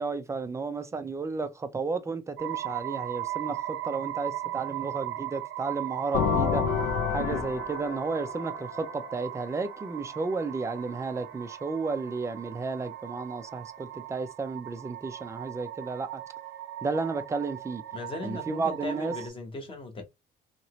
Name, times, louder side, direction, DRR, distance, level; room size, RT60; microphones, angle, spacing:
voice 1, 0.0-6.7 7.1-16.2 16.8-17.8 18.2-19.1, right 4 dB, 15° right, 0.3 m, -33 dB
sound 1, 2.4-19.3, right 14 dB, 85° right, 0.5 m, -38 dB
sound 2, 6.1-9.9, left 6 dB, 80° left, 0.6 m, -30 dB
voice 2, 17.9-20.0, left 2 dB, 25° left, 1.0 m, -38 dB
2.9 x 2.7 x 3.0 m
cardioid pair, 170°, 20 cm